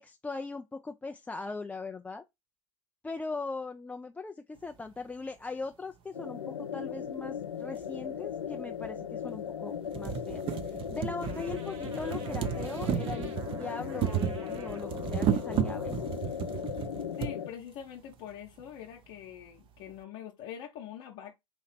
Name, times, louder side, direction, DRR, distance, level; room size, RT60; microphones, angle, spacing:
voice 1, 0.0-2.2 3.0-16.0, left 3 dB, 10° left, 0.3 m, -40 dB
sound 1, 6.1-17.5, left 8 dB, 80° left, 0.6 m, -37 dB
sound 2, 7.8-7.9 8.8-8.9 9.4-9.5 9.8-17.3 18.3-18.4 18.6-18.7, right 9 dB, 35° right, 0.6 m, -33 dB
sound 3, 11.2-16.2, right 5 dB, 65° right, 1.2 m, -52 dB
voice 2, 17.2-21.3, left 9 dB, 50° left, 0.9 m, -44 dB
4.4 x 2.8 x 4.1 m
figure-of-eight pair, 80°, 16 cm